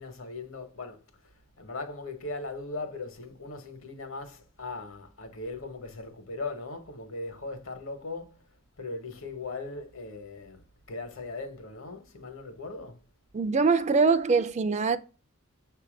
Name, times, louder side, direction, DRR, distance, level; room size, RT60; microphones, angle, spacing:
voice 1, 0.0-1.3 1.6-13.0, left 3 dB, 70° left, 1.1 m, -39 dB
voice 2, 13.3-15.0, right 4 dB, 30° right, 0.4 m, -23 dB
6.9 x 2.7 x 5.1 m
head